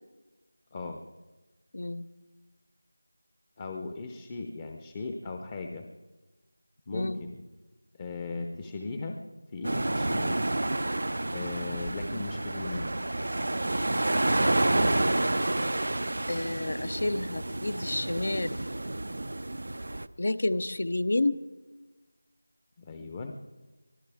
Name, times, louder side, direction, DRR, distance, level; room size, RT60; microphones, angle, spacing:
voice 1, 1.7-2.1 6.9-7.2 16.3-18.6 20.2-21.4, left 2 dB, 55° left, 15 dB, 0.8 m, -30 dB
voice 2, 3.6-5.9 6.9-7.4 8.0-9.2 9.5-10.4 11.3-12.9 22.8-23.4, left 3 dB, 20° left, 5 dB, 0.8 m, -37 dB
sound 1, 9.6-20.1, right 1 dB, 65° right, 0.6 m, -29 dB
24.5 x 15.0 x 3.6 m, 1.2 s
figure-of-eight pair, 175°, 0 cm